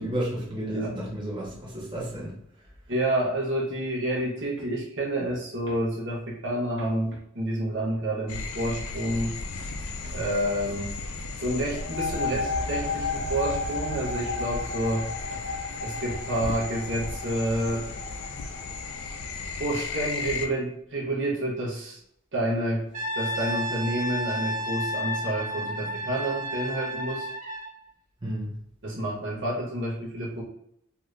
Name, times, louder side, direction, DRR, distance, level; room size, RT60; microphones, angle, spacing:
voice 1, 0.0-2.3 28.2-28.5, right 1 dB, 25° right, -6 dB, 0.9 m, -32 dB
voice 2, 2.9-9.7 10.0-10.9 11.4-15.4 15.8-17.9 19.6-22.0 22.3-22.9 23.1-27.3 28.8-30.4, right 1 dB, 60° right, -3 dB, 0.9 m, -29 dB
sound 1, 8.3-20.5, left 4 dB, 85° left, 0.4 m, -36 dB
sound 2, 11.7-19.2, left 3 dB, 30° left, 0.9 m, -33 dB
Brass instrument, 22.9-27.8, equal, 40° right, 0.5 m, -32 dB
2.7 x 2.5 x 3.2 m, 0.72 s
head